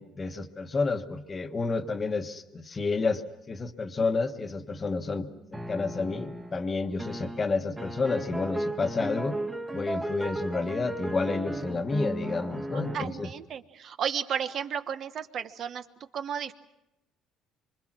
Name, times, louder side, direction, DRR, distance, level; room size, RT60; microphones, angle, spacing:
voice 1, 0.0-9.4 9.7-13.3, left 3 dB, 25° left, 7 dB, 1.4 m, -30 dB
sound 1, 5.5-6.6 7.0-13.0, right 1 dB, 10° right, 1.4 m, -35 dB
voice 2, 12.7-15.8 16.1-16.5, right 8 dB, 50° right, 9 dB, 1.2 m, -33 dB
25.5 x 25.5 x 6.2 m, 0.90 s
cardioid pair, 130°, 0 cm